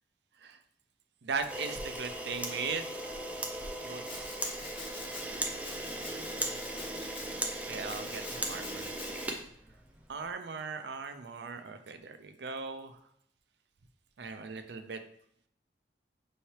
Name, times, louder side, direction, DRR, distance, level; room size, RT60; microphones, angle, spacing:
voice 1, 1.2-2.9 3.8-4.3 7.7-8.9 10.1-12.9 14.2-15.0, right 5 dB, 75° right, 8 dB, 0.5 m, -38 dB
Camera, 1.4-10.1, right 1 dB, 10° right, 0.4 m, -38 dB
Domestic sounds home sounds, 4.0-5.3 5.6-7.3 7.9-9.3, left 3 dB, 30° left, 0.7 m, -46 dB
5.4 x 3.2 x 2.8 m, 0.71 s
head